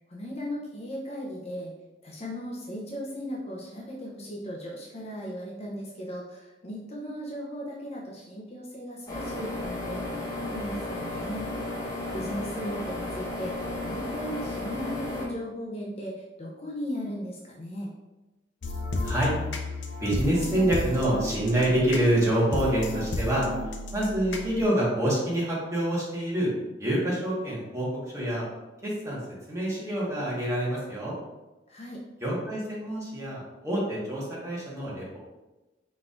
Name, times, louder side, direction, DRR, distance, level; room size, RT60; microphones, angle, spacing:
voice 1, 0.1-1.7 2.0-11.5 12.1-13.6 13.8-17.9 31.7-32.0, equal, 35° left, -3 dB, 0.7 m, -37 dB
sound 1, 9.1-15.3, left 2 dB, 20° left, 1.1 m, -34 dB
sound 2, 18.6-24.6, left 1 dB, 85° left, 0.6 m, -33 dB
voice 2, 20.0-23.5 23.9-26.5 26.8-27.9 28.1-28.4 28.8-29.2 29.5-31.1 32.2-35.2, right 1 dB, 20° right, -7 dB, 1.5 m, -26 dB
4.5 x 4.0 x 2.5 m, 1.1 s
head